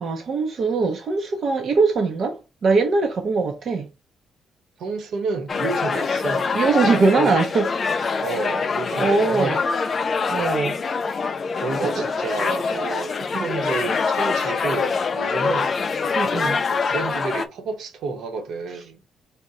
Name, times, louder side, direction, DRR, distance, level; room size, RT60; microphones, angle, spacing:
voice 1, 0.0-3.9 6.5-7.7 8.0-8.2 8.9-9.6 10.3-10.8 11.8-12.0 13.3-13.5 16.2-16.6, right 4 dB, 50° right, 0.6 m, -22 dB
voice 2, 4.8-7.4 8.2-9.6 11.5-15.8 16.7-19.0, right 4 dB, 75° right, 0.9 m, -30 dB
sound 1, 5.5-17.5, left 5 dB, 35° left, 0.4 m, -24 dB
Laughter, 11.4-11.9 12.3-16.7, left 6 dB, 60° left, 0.8 m, -37 dB
4.1 x 2.1 x 3.6 m
cardioid pair, 130°, 0 cm